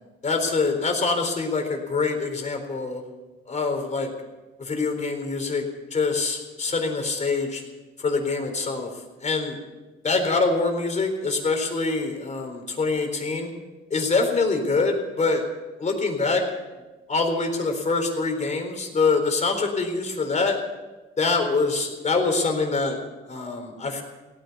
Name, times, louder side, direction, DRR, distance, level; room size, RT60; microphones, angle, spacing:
voice 1, 0.2-3.0 3.5-4.1 4.6-5.7 5.9-7.6 8.0-9.6 10.0-13.5 13.9-15.4 15.8-16.4 17.1-20.6 21.2-23.0 23.3-24.0, left 3 dB, 35° left, 4 dB, 4.0 m, -25 dB
16.5 x 10.0 x 8.1 m, 1.1 s
cardioid pair, 90°, 20 cm